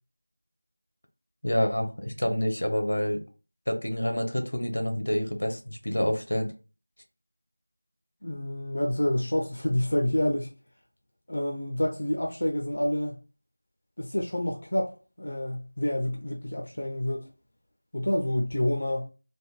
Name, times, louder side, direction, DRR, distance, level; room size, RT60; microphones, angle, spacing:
voice 1, 1.4-3.2 3.7-6.5, equal, 80° left, 0.8 m, -27 dB
voice 2, 8.2-10.5 11.3-13.2 14.0-17.3 17.9-19.1, left 1 dB, 50° left, 0.5 m, -28 dB
3.4 x 2.1 x 3.0 m
figure-of-eight pair, 175°, 0 cm